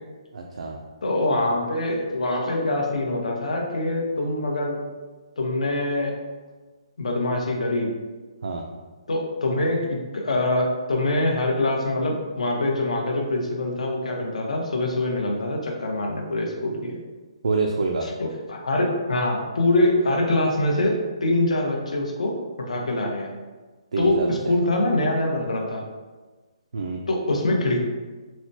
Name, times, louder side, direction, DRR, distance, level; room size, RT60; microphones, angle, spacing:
voice 1, 0.3-0.8 8.4-8.6 17.4-18.1 23.9-24.6 26.7-27.0, right 3 dB, 90° right, 1 dB, 0.3 m, -26 dB
voice 2, 1.0-4.8 5.4-6.1 7.0-7.9 9.1-17.0 18.0-23.3 24.0-25.8 27.1-27.8, left 1 dB, 90° left, 0 dB, 0.7 m, -24 dB
4.1 x 2.1 x 2.6 m, 1.3 s
hypercardioid pair, 165°, 3 cm